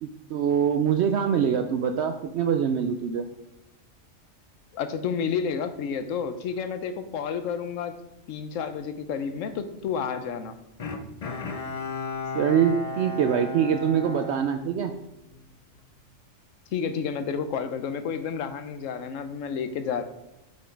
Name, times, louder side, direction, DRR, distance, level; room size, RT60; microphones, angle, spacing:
voice 1, 0.0-3.3 12.3-14.9, right 8 dB, 65° right, 6 dB, 0.7 m, -24 dB
voice 2, 4.7-7.9 8.3-10.6 16.7-20.0, left 6 dB, 75° left, 10 dB, 1.0 m, -30 dB
Bowed string instrument, 10.8-15.3 15.7-15.8, left 3 dB, 50° left, 0.4 m, -35 dB
7.2 x 5.0 x 4.6 m, 0.95 s
omnidirectional pair, 1.4 m